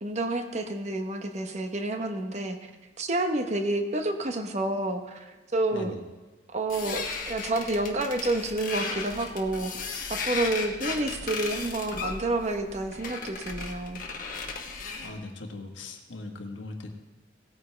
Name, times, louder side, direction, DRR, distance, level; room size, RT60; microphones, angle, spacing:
voice 1, 0.0-2.7 3.0-5.9 6.5-14.0, right 2 dB, 35° right, 6 dB, 1.0 m, -29 dB
sound 1, 6.7-15.2, left 4 dB, 45° left, 1.3 m, -36 dB
voice 2, 15.0-16.9, left 2 dB, 85° left, 3 dB, 1.3 m, -39 dB
17.5 x 9.3 x 3.3 m, 1.2 s
head